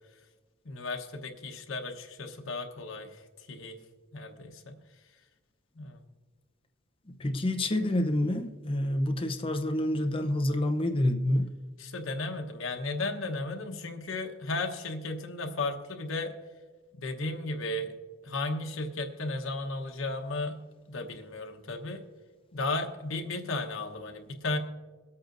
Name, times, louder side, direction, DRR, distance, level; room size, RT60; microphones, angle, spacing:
voice 1, 0.6-3.8 4.1-4.8 5.7-6.0 11.8-16.3 16.9-17.9 18.2-20.6 20.9-22.0 22.5-24.6, left 2 dB, 80° left, 4 dB, 1.1 m, -34 dB
voice 2, 7.2-11.5, left 1 dB, 25° left, 5 dB, 0.7 m, -28 dB
23.0 x 8.4 x 2.6 m, 1.3 s
head